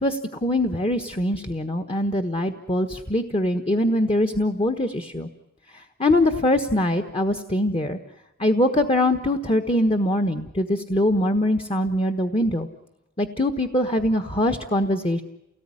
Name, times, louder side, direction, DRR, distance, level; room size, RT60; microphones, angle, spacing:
voice 1, 0.0-5.3 5.7-8.0 8.4-12.7 13.2-15.2, left 1 dB, 25° left, 6 dB, 1.3 m, -23 dB
29.5 x 18.5 x 9.9 m, 0.94 s
head